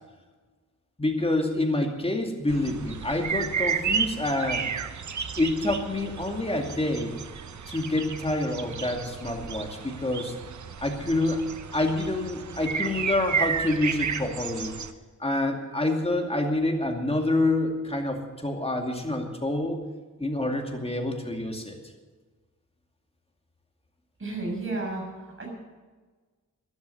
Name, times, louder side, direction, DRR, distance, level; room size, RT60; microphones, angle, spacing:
voice 1, 1.0-4.6 5.4-7.1 7.7-10.3 10.8-11.4 11.7-14.7 15.2-19.8 20.2-21.8, left 2 dB, 20° left, 3 dB, 2.3 m, -27 dB
sound 1, 2.5-14.9, right 6 dB, 65° right, 1.0 m, -32 dB
voice 2, 24.2-25.0 25.4-25.5, right 2 dB, 40° right, 0 dB, 6.4 m, -31 dB
13.5 x 11.5 x 7.1 m, 1.4 s
wide cardioid pair, 115°, 31 cm